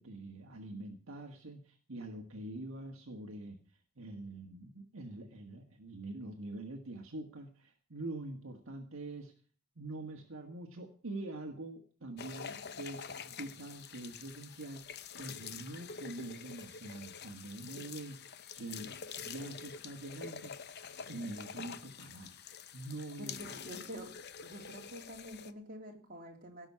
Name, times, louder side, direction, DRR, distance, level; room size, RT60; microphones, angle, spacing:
voice 1, 0.0-9.3 9.7-20.5 21.1-22.4 22.7-23.6, right 2 dB, 65° right, 3 dB, 1.7 m, -45 dB
sound 1, 12.2-25.5, left 6 dB, 50° left, 0.8 m, -47 dB
voice 2, 23.2-24.1 24.4-26.7, equal, 40° right, 1 dB, 3.4 m, -47 dB
17.5 x 6.2 x 9.5 m, 0.44 s
head